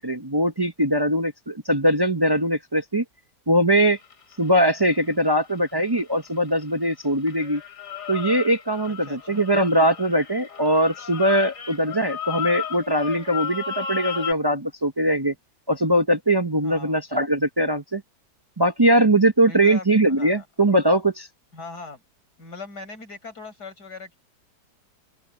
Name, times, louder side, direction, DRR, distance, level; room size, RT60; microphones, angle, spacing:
voice 1, 0.0-3.0 3.5-4.0 4.4-7.6 8.1-15.3 15.7-18.0 18.6-21.3, right 1 dB, 25° right, 0.5 m, -21 dB
sound 1, 3.8-6.9 7.3-14.3, left 8 dB, 50° left, 2.9 m, -35 dB
voice 2, 8.9-9.4 16.6-17.0 19.5-20.5 21.5-22.0 22.4-24.2, left 3 dB, 65° left, 5.9 m, -40 dB
open air
omnidirectional pair, 1.8 m